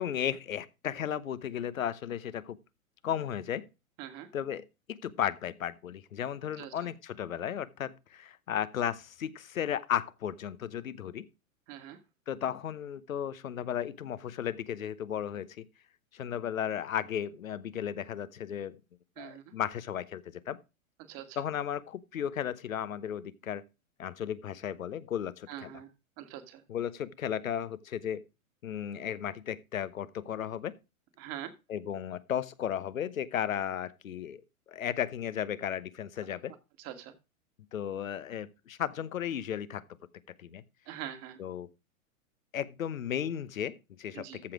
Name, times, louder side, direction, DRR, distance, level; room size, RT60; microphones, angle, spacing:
voice 1, 0.0-2.6 3.0-3.7 4.3-11.2 12.3-15.6 16.1-18.8 19.2-20.6 21.4-23.6 24.0-25.7 26.7-28.2 28.6-30.7 31.7-34.4 34.7-36.5 37.7-39.8 40.4-40.6 41.4-41.7 42.5-44.5, left 9 dB, 70° left, 1.0 m, -35 dB
voice 2, 11.7-12.0 19.2-19.5 21.1-21.4 25.5-25.9 26.2-26.6 31.2-31.5 36.8-37.1 40.9-41.4 44.1-44.4, right 11 dB, 35° right, 1.8 m, -43 dB
14.0 x 4.9 x 4.9 m
figure-of-eight pair, 110°, 42 cm